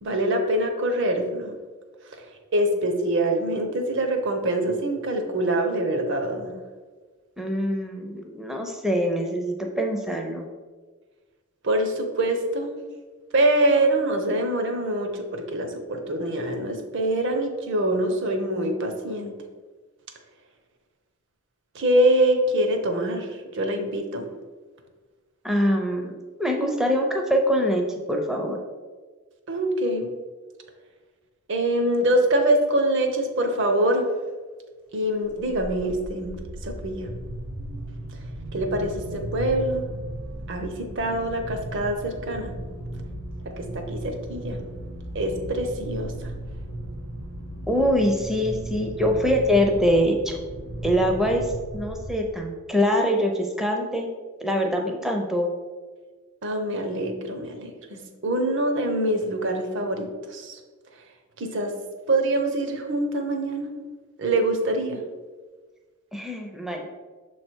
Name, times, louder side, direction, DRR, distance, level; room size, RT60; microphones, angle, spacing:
voice 1, 0.0-1.6 2.1-2.3 2.5-6.5 11.6-12.7 13.3-19.4 21.7-24.3 29.5-30.1 31.5-34.1 34.9-37.1 38.5-39.8 40.5-42.6 43.4-44.6 45.1-46.3 56.4-60.6 61.4-61.7 62.1-63.7 64.2-65.0, right 1 dB, 55° right, 5 dB, 0.8 m, -24 dB
voice 2, 7.4-10.5 25.4-28.6 47.7-50.4 50.8-51.5 51.7-54.1 54.4-55.5 66.1-66.9, equal, ahead, 2 dB, 0.5 m, -24 dB
sound 1, 35.3-52.6, right 1 dB, 90° right, 0.8 m, -36 dB
6.7 x 3.3 x 4.4 m, 1.4 s
head